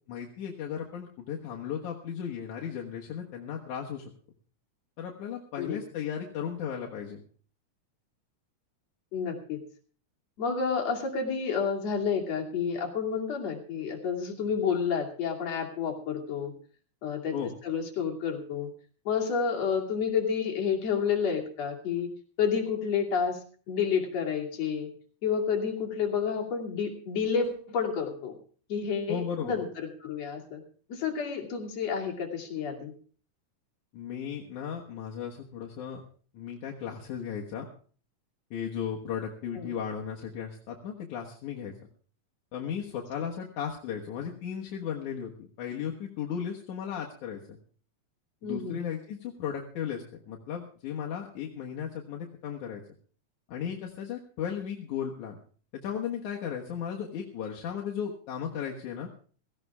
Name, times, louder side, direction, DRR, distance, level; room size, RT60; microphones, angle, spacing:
voice 1, 0.1-4.0 5.0-7.2 17.3-17.5 29.1-29.5 33.9-36.0 36.3-37.7 38.5-41.7 42.5-47.6 48.4-52.8 53.5-55.4 55.7-59.1, left 8 dB, 75° left, -1 dB, 2.8 m, -35 dB
voice 2, 9.1-9.6 10.4-16.5 17.0-17.4 17.6-18.7 19.1-22.1 22.4-23.4 23.7-24.9 25.2-28.4 28.7-30.6 30.9-32.9 39.6-39.7 48.4-48.8, left 6 dB, 55° left, 1 dB, 3.5 m, -30 dB
17.0 x 16.0 x 3.5 m, 0.43 s
omnidirectional pair, 3.6 m